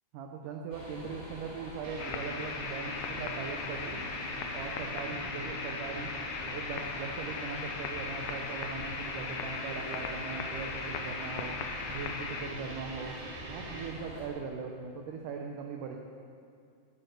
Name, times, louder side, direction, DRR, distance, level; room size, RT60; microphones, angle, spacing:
voice 1, 0.1-4.0 4.5-6.1 6.5-11.6 11.9-13.2 13.4-16.0, right 5 dB, 80° right, 2 dB, 1.8 m, -40 dB
sound 1, 0.7-14.3, equal, 15° left, 1.4 m, -47 dB
sound 2, 1.8-13.9, right 1 dB, 45° right, 2.1 m, -42 dB
sound 3, 2.0-12.5, left 6 dB, 85° left, 1.8 m, -39 dB
11.5 x 9.1 x 8.1 m, 2.3 s
omnidirectional pair, 4.8 m